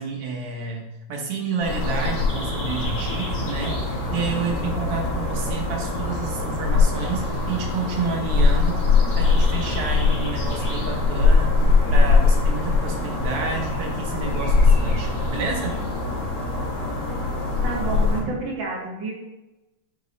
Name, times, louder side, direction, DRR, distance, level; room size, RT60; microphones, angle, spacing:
voice 1, 0.0-15.8, right 4 dB, 85° right, 1 dB, 2.0 m, -30 dB
sound 1, 1.6-18.2, left 3 dB, 85° left, 2.9 m, -22 dB
voice 2, 17.6-19.1, right 3 dB, 60° right, -1 dB, 1.8 m, -29 dB
8.0 x 3.1 x 4.0 m, 0.97 s
omnidirectional pair, 2.4 m